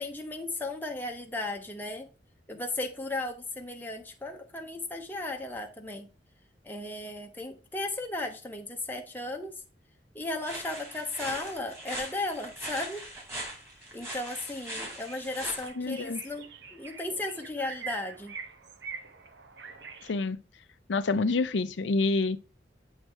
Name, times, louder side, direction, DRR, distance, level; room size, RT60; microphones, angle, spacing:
voice 1, 0.0-2.1 2.5-6.1 6.6-9.6 10.1-13.1 13.9-18.3, left 2 dB, 10° left, 0.7 m, -35 dB
sound 1, 10.4-15.7, right 1 dB, 15° right, 2.6 m, -40 dB
sound 2, 14.3-14.4 14.7-20.1, right 5 dB, 75° right, 0.9 m, -45 dB
voice 2, 15.8-16.2 20.0-20.4 20.9-22.4, left 3 dB, 85° left, 0.5 m, -27 dB
7.6 x 3.2 x 4.5 m
head